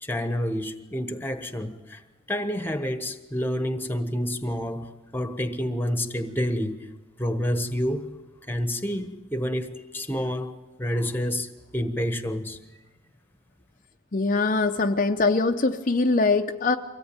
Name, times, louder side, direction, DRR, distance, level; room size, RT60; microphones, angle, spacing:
voice 1, 0.0-2.0 2.3-4.8 5.1-6.8 7.2-8.1 8.5-12.6, equal, 10° left, 1.3 m, -28 dB
voice 2, 14.1-16.8, left 3 dB, 45° left, 0.7 m, -22 dB
24.0 x 17.5 x 8.9 m
head